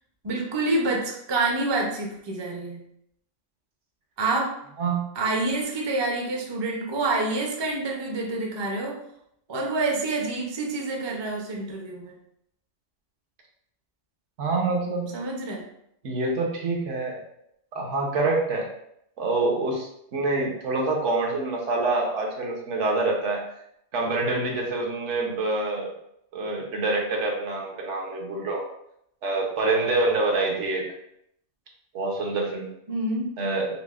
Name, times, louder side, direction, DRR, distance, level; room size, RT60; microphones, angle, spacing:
voice 1, 0.2-2.8 4.2-4.5 5.2-9.0 9.5-12.2 15.1-15.6 32.9-33.3, right 2 dB, 35° right, -1 dB, 0.4 m, -27 dB
voice 2, 14.4-15.2 16.0-17.2 17.7-18.7 19.2-23.5 23.9-25.9 26.3-28.7 29.2-30.8 31.9-32.7 33.4-33.7, right 3 dB, 70° right, 0 dB, 1.1 m, -26 dB
5.7 x 2.0 x 2.4 m, 0.74 s
omnidirectional pair, 1.3 m